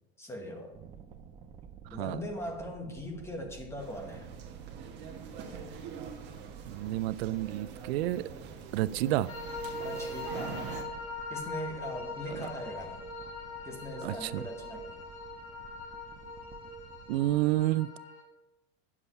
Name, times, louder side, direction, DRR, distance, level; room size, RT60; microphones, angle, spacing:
voice 1, 0.2-0.8 1.9-4.3 9.8-10.6 11.3-13.0 13.6-15.0, left 1 dB, 10° left, 3 dB, 1.3 m, -40 dB
sound 1, 0.7-17.7, right 7 dB, 20° right, 0.5 m, -52 dB
voice 2, 1.9-2.2 6.7-8.3 8.7-9.3 12.3-12.4 14.0-14.4 17.1-17.9, right 15 dB, 85° right, 17 dB, 0.5 m, -30 dB
sound 2, 3.8-10.8, right 6 dB, 35° right, 1.3 m, -44 dB
sound 3, 9.3-18.2, left 2 dB, 50° left, 3.0 m, -41 dB
9.6 x 7.4 x 4.3 m, 0.98 s
supercardioid pair, 155°, 30 cm